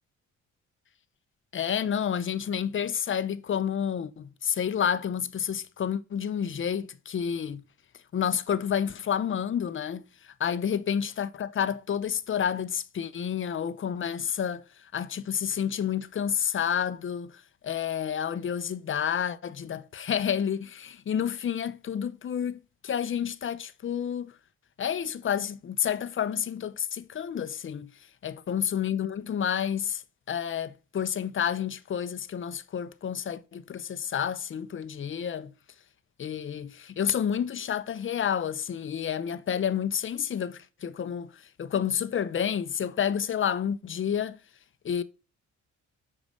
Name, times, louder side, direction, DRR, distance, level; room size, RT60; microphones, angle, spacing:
voice 1, 1.5-7.6 8.1-24.3 24.8-27.9 28.2-35.5 36.2-44.4 44.8-45.0, left 8 dB, 40° left, 0.7 m, -30 dB
7.1 x 4.8 x 5.2 m
cardioid pair, 90°, 30 cm